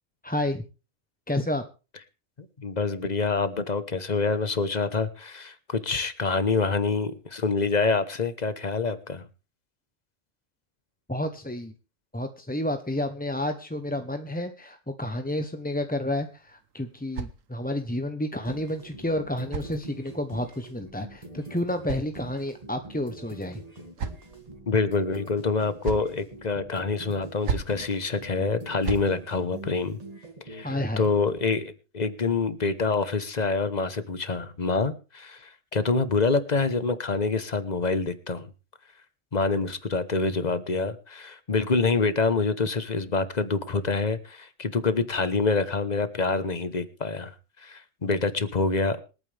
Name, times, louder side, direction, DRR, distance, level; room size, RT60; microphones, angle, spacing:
voice 1, 0.2-0.6 1.3-1.6 11.1-11.7 12.1-23.6 30.6-31.1, left 1 dB, 10° left, 7 dB, 0.7 m, -30 dB
voice 2, 2.4-9.2 24.7-30.0 30.5-38.5 39.3-49.0, left 4 dB, 35° left, 13 dB, 1.2 m, -26 dB
sound 1, 16.3-17.9 18.9-20.3 21.3-22.7 23.5-24.5 25.5-26.2 27.2-27.8 28.6-29.1, right 6 dB, 85° right, 1.5 m, -37 dB
sound 2, 18.4-31.4, right 1 dB, 30° right, 2.4 m, -44 dB
26.5 x 9.1 x 3.4 m, 0.33 s
omnidirectional pair, 1.3 m